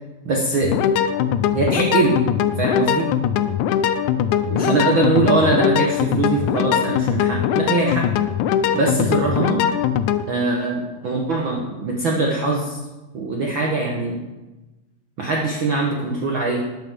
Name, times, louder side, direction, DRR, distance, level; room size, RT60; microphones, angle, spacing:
voice 1, 0.2-0.9 1.5-2.2 2.6-3.1 4.5-8.1 8.7-9.6 10.3-12.8 13.1-14.2 15.2-16.6, right 3 dB, 90° right, -1 dB, 1.0 m, -22 dB
sound 1, 0.6-10.2, left 9 dB, 85° left, 1.7 m, -21 dB
12.5 x 9.4 x 3.7 m, 1.1 s
omnidirectional pair, 4.0 m